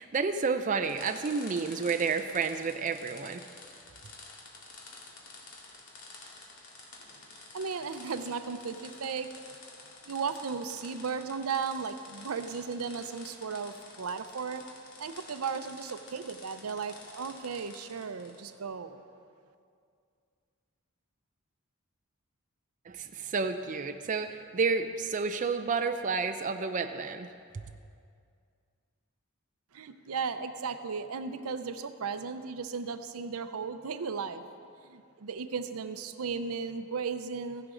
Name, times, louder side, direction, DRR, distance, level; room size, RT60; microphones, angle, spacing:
voice 1, 0.0-3.4 22.9-27.6, right 5 dB, 35° right, 7 dB, 0.4 m, -30 dB
sound 1, 0.8-18.6, left 3 dB, 85° left, 2.1 m, -50 dB
voice 2, 7.5-9.3 10.1-14.6 15.0-19.0 29.7-34.4 34.8-37.7, right 5 dB, 80° right, 10 dB, 0.6 m, -35 dB
15.0 x 11.0 x 3.8 m, 2.3 s
head